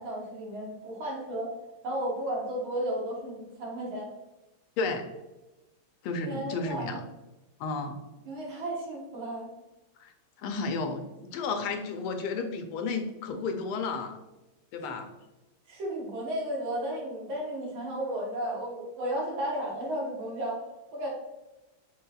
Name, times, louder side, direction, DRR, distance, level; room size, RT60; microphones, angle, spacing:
voice 1, 0.0-1.5 1.8-4.1 6.2-7.0 8.3-9.5 14.8-14.9 15.7-20.6 20.9-21.1, right 1 dB, 70° right, -3 dB, 2.1 m, -33 dB
voice 2, 4.8-5.1 6.0-7.0 7.6-8.0 10.0-10.1 10.4-11.0 11.3-14.2 14.7-15.1, left 4 dB, 85° left, 6 dB, 1.5 m, -32 dB
6.7 x 3.2 x 2.3 m, 1.0 s
omnidirectional pair, 2.3 m